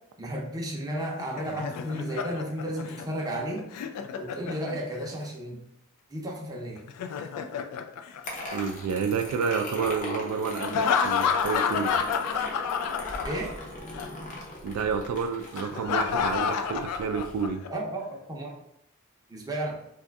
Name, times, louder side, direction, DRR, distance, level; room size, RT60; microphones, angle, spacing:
voice 1, 0.2-3.7 4.2-5.6 6.1-6.8 13.2-13.5 17.7-18.5 19.3-19.8, right 1 dB, 15° right, -2 dB, 0.6 m, -33 dB
Laughter, 1.0-5.1 6.8-8.9 10.6-13.7 13.9-14.1 15.6-17.7, left 6 dB, 90° left, 0.3 m, -30 dB
sound 1, 8.2-17.5, left 1 dB, 35° left, 0.6 m, -39 dB
voice 2, 8.5-11.9 14.6-17.7, right 5 dB, 75° right, 10 dB, 0.3 m, -29 dB
2.6 x 2.3 x 3.4 m, 0.79 s
head